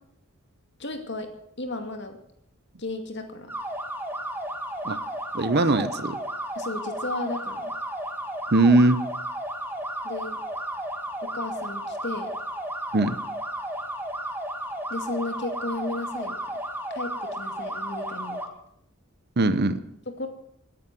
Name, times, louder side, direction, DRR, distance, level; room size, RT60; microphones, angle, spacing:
voice 1, 0.8-1.3 1.6-2.2 2.8-3.5 6.6-7.7 10.0-10.4 11.2-12.3 14.9-16.4 16.9-18.4 20.1-20.3, left 2 dB, 55° left, 6 dB, 2.3 m, -34 dB
sound 1, 3.5-18.5, right 1 dB, 10° right, 1.6 m, -33 dB
voice 2, 5.3-6.2 8.5-9.0 12.9-13.2 19.4-19.8, right 2 dB, 50° right, 13 dB, 0.9 m, -20 dB
18.0 x 10.0 x 7.7 m, 0.71 s
head